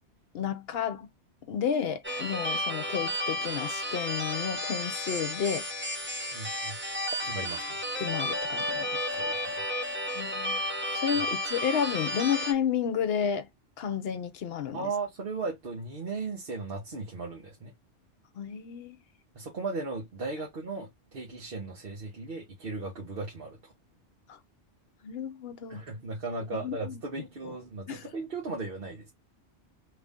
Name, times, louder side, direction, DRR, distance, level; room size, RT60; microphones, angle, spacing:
voice 1, 0.3-1.1 1.5-5.7 8.0-9.1 10.1-10.6 10.9-13.5 13.8-14.9 18.3-19.0 24.3-24.4 25.0-25.8 26.5-27.0 27.4-27.6 27.9-28.1, left 8 dB, 65° left, 0.8 m, -31 dB
sound 1, 2.0-12.5, left 1 dB, 15° right, 0.6 m, -32 dB
voice 2, 6.3-6.8 7.2-7.8 9.2-9.6 11.1-11.2 14.7-17.7 19.3-23.7 25.7-29.1, right 3 dB, 55° right, 1.2 m, -36 dB
3.2 x 2.6 x 3.5 m
omnidirectional pair, 1.2 m